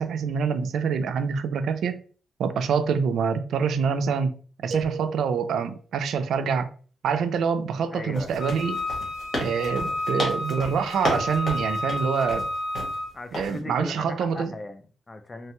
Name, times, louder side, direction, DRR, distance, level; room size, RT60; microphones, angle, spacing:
voice 1, 0.0-2.0 2.4-4.4 4.6-6.7 7.0-8.8 9.4-12.5 13.3-14.5, right 6 dB, 80° right, 0.3 m, -26 dB
sound 1, 4.7-5.8, right 3 dB, 45° right, 0.6 m, -37 dB
voice 2, 7.9-8.4 13.1-15.5, left 2 dB, 20° left, 0.3 m, -38 dB
sound 2, 8.1-13.0 13.3-13.6, left 1 dB, 40° left, 1.2 m, -33 dB
Wind instrument woodwind instrument, 8.4-13.1, left 1 dB, 60° left, 0.6 m, -31 dB
3.1 x 2.2 x 2.9 m
wide cardioid pair, 155°, 0 cm